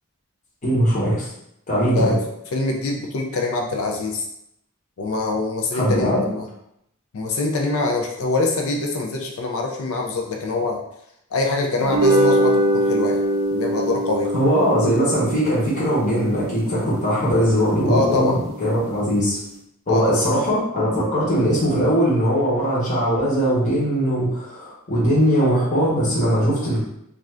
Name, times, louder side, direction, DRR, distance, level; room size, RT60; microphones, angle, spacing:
voice 1, 0.6-1.3 1.7-2.1 5.7-6.2 14.3-19.4 19.9-26.8, equal, 35° left, -8 dB, 0.9 m, -20 dB
voice 2, 1.8-2.2 2.5-4.2 5.0-6.4 7.1-10.8 11.3-13.2 13.5-14.3 17.9-18.4 19.9-20.2, left 3 dB, 80° left, 1 dB, 0.4 m, -24 dB
sound 1, 11.8-18.3, right 1 dB, 75° right, 0.5 m, -23 dB
2.5 x 2.4 x 3.2 m, 0.78 s
head